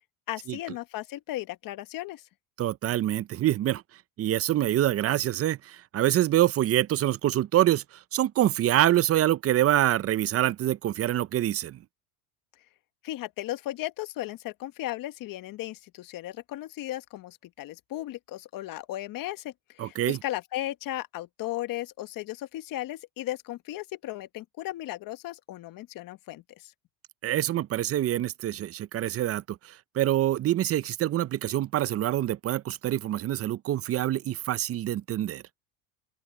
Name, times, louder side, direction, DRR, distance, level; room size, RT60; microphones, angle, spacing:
voice 1, 0.3-2.2 13.0-26.7, left 15 dB, 55° left, 1.6 m, -36 dB
voice 2, 2.6-3.8 4.2-7.8 8.1-11.8 19.8-20.2 27.2-35.4, right 13 dB, 35° right, 0.6 m, -25 dB
open air
supercardioid pair, 100°, 40 cm